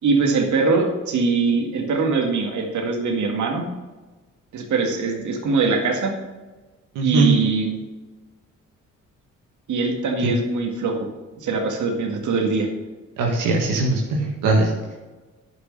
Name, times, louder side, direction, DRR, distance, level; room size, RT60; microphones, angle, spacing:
voice 1, 0.0-3.6 4.5-6.1 7.0-7.7 9.7-11.1 11.4-12.7, right 4 dB, 65° right, 2 dB, 2.0 m, -22 dB
voice 2, 7.0-7.3 10.2-10.3 13.2-14.7, right 3 dB, 85° right, -1 dB, 1.9 m, -20 dB
10.0 x 6.3 x 6.6 m, 1.2 s
supercardioid pair, 65°, 31 cm